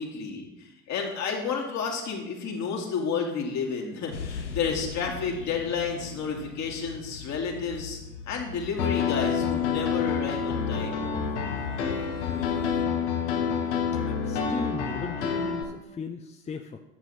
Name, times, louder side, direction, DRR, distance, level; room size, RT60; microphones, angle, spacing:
voice 1, 0.0-8.0 8.3-11.0, left 5 dB, 50° left, 0 dB, 2.4 m, -31 dB
sound 1, 4.1-12.9, left 5 dB, 90° left, 0.8 m, -40 dB
Piano, 8.8-15.6, left 6 dB, 70° left, 1.5 m, -28 dB
voice 2, 13.3-13.8 14.1-16.8, left 4 dB, 20° left, 5 dB, 0.7 m, -37 dB
11.0 x 7.5 x 4.2 m, 0.95 s
hypercardioid pair, 65°, 35 cm